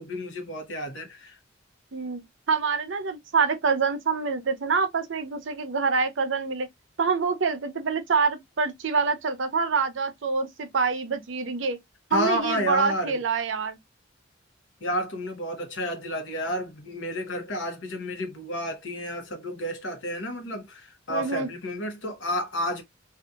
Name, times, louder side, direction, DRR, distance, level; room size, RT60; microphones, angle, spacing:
voice 1, 0.0-1.4 12.1-13.2 14.8-22.8, equal, 70° left, 0.9 m, -30 dB
voice 2, 1.9-2.2 2.5-6.7 7.0-11.8 12.1-13.8 21.1-21.5, right 5 dB, 70° right, 0.6 m, -26 dB
2.7 x 2.4 x 2.3 m
head